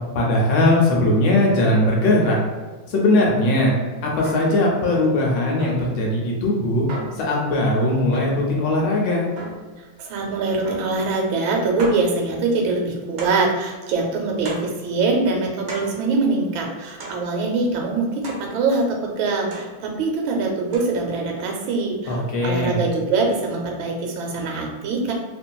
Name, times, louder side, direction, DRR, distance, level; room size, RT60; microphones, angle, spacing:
voice 1, 0.1-2.4 2.9-3.7 4.0-6.8 7.1-9.2 22.1-22.8, left 1 dB, 75° left, -2 dB, 1.2 m, -19 dB
sound 1, 4.2-4.6 5.6-5.9 6.9-7.2 8.1-8.5 9.4-9.7 10.6-11.0 11.3-11.4 11.8-12.1 13.2-13.5 14.4-14.8 15.7-16.0 17.0-17.3 18.2-18.5 19.5-19.8 20.7-20.8, right 2 dB, 65° right, 0.9 m, -34 dB
voice 2, 10.0-25.1, right 3 dB, 80° right, 1 dB, 1.3 m, -23 dB
2.9 x 2.5 x 2.2 m, 1.3 s
omnidirectional pair, 2.2 m